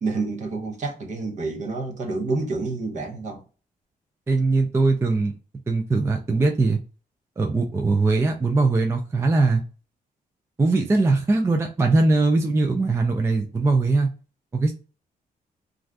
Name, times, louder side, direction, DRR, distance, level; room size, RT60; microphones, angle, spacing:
voice 1, 0.0-3.4, right 3 dB, 50° right, 0.9 m, -28 dB
voice 2, 4.3-5.3 5.7-6.8 7.4-9.6 10.6-14.1 14.5-14.7, right 3 dB, 15° right, 0.3 m, -21 dB
2.5 x 2.3 x 3.2 m
wide cardioid pair, 150°, 15 cm